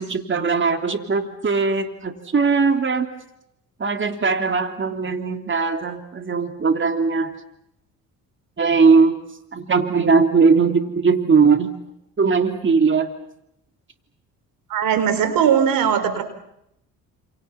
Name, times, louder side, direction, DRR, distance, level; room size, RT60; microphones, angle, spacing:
voice 1, 0.0-3.1 3.8-7.3 8.6-9.2 9.5-11.7 12.2-13.1, right 5 dB, 35° right, 6 dB, 3.1 m, -19 dB
voice 2, 14.7-16.2, right 8 dB, 70° right, 11 dB, 4.5 m, -19 dB
29.0 x 28.5 x 5.9 m, 0.80 s
supercardioid pair, 75°, 35 cm